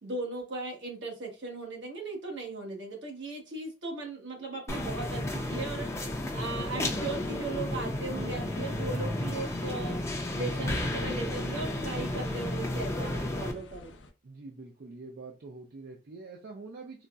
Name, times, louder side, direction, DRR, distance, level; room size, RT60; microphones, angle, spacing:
voice 1, 0.0-10.0 10.3-13.9, right 3 dB, 75° right, 0 dB, 1.1 m, -38 dB
sound 1, 4.7-13.5, left 1 dB, 15° left, 0.5 m, -32 dB
sound 2, 8.9-14.1, left 1 dB, 90° left, 0.5 m, -49 dB
voice 2, 14.2-17.1, right 3 dB, 55° right, 0 dB, 0.5 m, -45 dB
3.9 x 2.0 x 2.3 m, 0.32 s
head